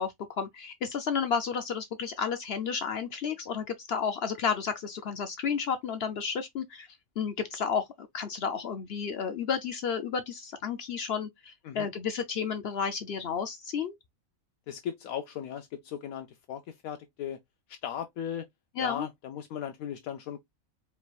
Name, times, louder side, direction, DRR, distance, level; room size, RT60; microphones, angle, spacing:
voice 1, 0.0-6.9 7.2-7.8 8.1-13.9 18.8-19.1, left 6 dB, 60° left, 0.7 m, -32 dB
voice 2, 14.7-17.4 17.8-18.5 18.8-20.4, left 9 dB, 80° left, 1.1 m, -37 dB
4.6 x 3.1 x 2.3 m
omnidirectional pair, 1.5 m